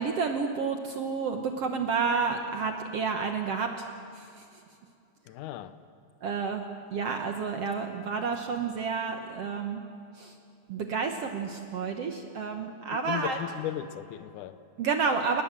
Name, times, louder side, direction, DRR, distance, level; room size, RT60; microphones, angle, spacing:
voice 1, 0.0-3.9 4.2-4.4 6.2-6.6 6.9-9.8 10.2-10.3 10.7-13.4 14.8-15.4, right 5 dB, 75° right, 1.4 m, -30 dB
voice 2, 5.3-5.8 13.0-14.6, left 12 dB, 80° left, 1.9 m, -36 dB
27.5 x 20.0 x 7.5 m
omnidirectional pair, 4.4 m